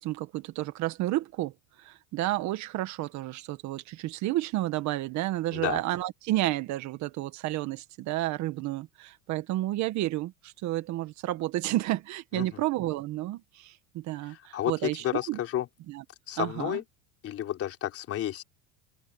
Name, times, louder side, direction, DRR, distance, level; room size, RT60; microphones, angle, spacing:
voice 1, 0.0-1.5 1.8-15.4 15.9-16.0 16.4-16.8, right 16 dB, 45° right, 1.6 m, -31 dB
voice 2, 14.2-15.7 16.3-16.8 17.2-18.4, left 12 dB, 35° left, 3.8 m, -31 dB
open air
supercardioid pair, 145°, 38 cm